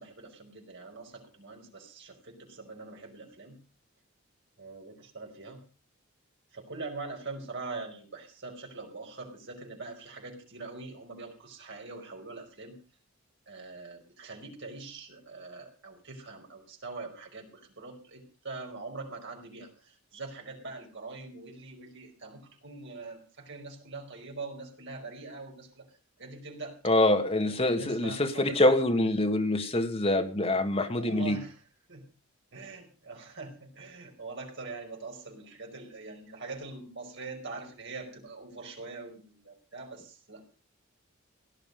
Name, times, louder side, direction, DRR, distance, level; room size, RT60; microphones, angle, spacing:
voice 1, 0.0-3.6 4.6-5.6 6.5-12.8 13.5-25.9 26.2-26.8 27.4-28.8 31.0-31.6 31.9-32.0 32.5-40.4, right 3 dB, 60° right, 5.1 m, -43 dB
voice 2, 26.8-31.4, left 1 dB, 30° left, 1.9 m, -25 dB
17.5 x 11.5 x 5.3 m
head